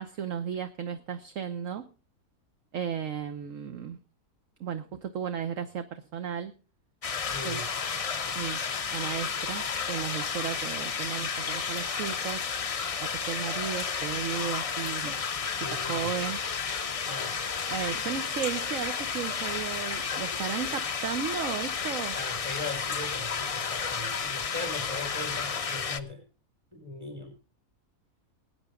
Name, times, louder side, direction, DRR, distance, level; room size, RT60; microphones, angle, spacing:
voice 1, 0.0-1.8 2.7-4.0 4.6-6.5 7.4-7.6 8.4-8.6 8.9-12.4 13.0-15.2 15.6-16.4 17.7-22.1, right 8 dB, 60° right, 8 dB, 1.3 m, -34 dB
sound 1, 7.0-26.0, left 6 dB, 55° left, 0.3 m, -32 dB
voice 2, 7.3-7.6 15.6-16.1 17.0-17.4 22.1-26.2 26.7-27.4, left 2 dB, 20° right, 4 dB, 5.9 m, -39 dB
21.5 x 9.2 x 3.8 m, 0.34 s
omnidirectional pair, 1.6 m